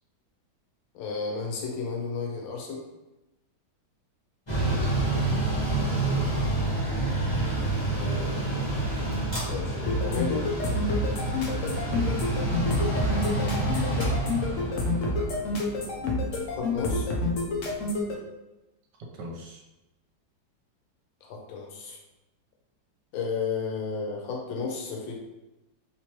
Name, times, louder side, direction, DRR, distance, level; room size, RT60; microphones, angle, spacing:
voice 1, 0.9-2.9 7.9-8.5 9.5-10.5 16.5-17.1 21.2-22.0 23.1-25.1, left 5 dB, 90° left, 0 dB, 1.5 m, -33 dB
Mechanical fan, 4.5-17.8, right 2 dB, 20° left, 1.0 m, -28 dB
voice 2, 4.6-6.3 12.8-13.7 14.4-15.5 19.0-19.6, equal, 75° right, 0 dB, 1.3 m, -40 dB
sound 1, 9.9-18.1, left 2 dB, 70° left, 0.7 m, -28 dB
3.3 x 2.9 x 2.9 m, 1.0 s
omnidirectional pair, 2.0 m